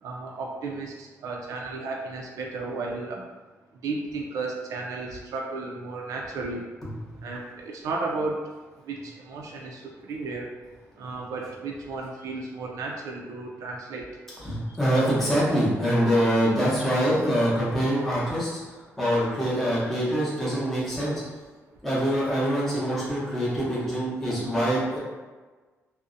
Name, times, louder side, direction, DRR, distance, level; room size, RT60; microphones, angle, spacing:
voice 1, 0.0-3.2 3.8-6.7 7.2-8.4 8.8-10.5 11.0-14.1 14.7-14.8, right 3 dB, 80° right, 0 dB, 0.3 m, -34 dB
voice 2, 6.8-7.2 14.4-21.2 21.8-25.0, equal, 5° left, -9 dB, 0.6 m, -25 dB
2.6 x 2.0 x 2.4 m, 1.3 s
wide cardioid pair, 180°, 6 cm